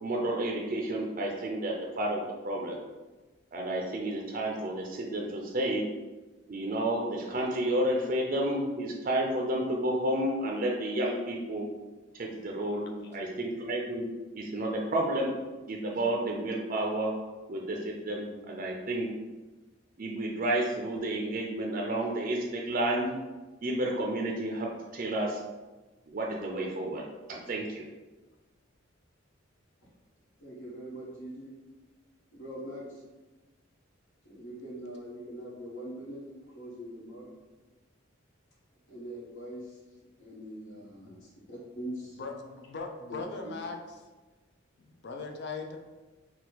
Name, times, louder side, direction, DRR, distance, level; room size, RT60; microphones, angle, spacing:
voice 1, 0.0-2.8 3.5-5.8 6.5-11.7 12.1-12.9 13.1-14.1 14.3-15.3 15.7-17.1 17.5-19.1 20.0-23.1 23.6-25.4 26.1-27.0 27.3-27.8, right 1 dB, 40° right, -1 dB, 0.4 m, -31 dB
voice 2, 30.4-31.5 32.3-33.0 34.2-36.2 36.5-37.3 38.8-39.8 40.2-42.2 43.1-43.2 43.4-43.5, right 1 dB, 70° left, -5 dB, 1.5 m, -42 dB
voice 3, 42.2-43.8 44.8-45.8, left 4 dB, 55° left, 3 dB, 0.5 m, -39 dB
4.3 x 2.3 x 3.9 m, 1.2 s
head